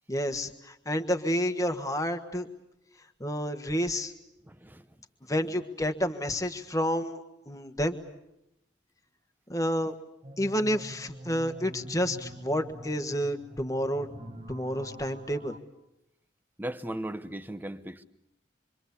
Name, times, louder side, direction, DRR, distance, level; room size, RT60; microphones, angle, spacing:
voice 1, 0.1-2.5 3.2-4.1 5.3-7.2 7.5-8.0 9.5-9.9 10.4-14.1 14.5-15.6, equal, 15° left, 1.6 m, -29 dB
voice 2, 4.5-4.9 16.6-18.0, right 1 dB, 10° right, 1.0 m, -37 dB
sound 1, 10.2-15.6, equal, 30° right, 1.8 m, -45 dB
26.5 x 25.0 x 8.4 m
head